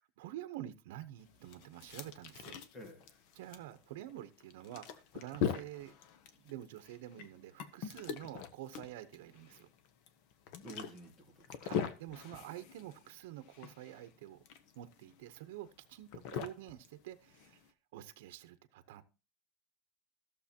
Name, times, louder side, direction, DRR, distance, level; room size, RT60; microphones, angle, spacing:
voice 1, 0.2-2.6 3.4-6.0 6.3-9.7 11.6-14.4 14.7-19.0, right 13 dB, 80° right, 0.8 m, -48 dB
sound 1, 1.2-17.7, left 8 dB, 50° left, 0.8 m, -43 dB
voice 2, 2.7-3.2 10.6-11.7, right 1 dB, 20° left, 1.7 m, -51 dB
14.5 x 6.8 x 2.8 m
cardioid pair, 180°, 0 cm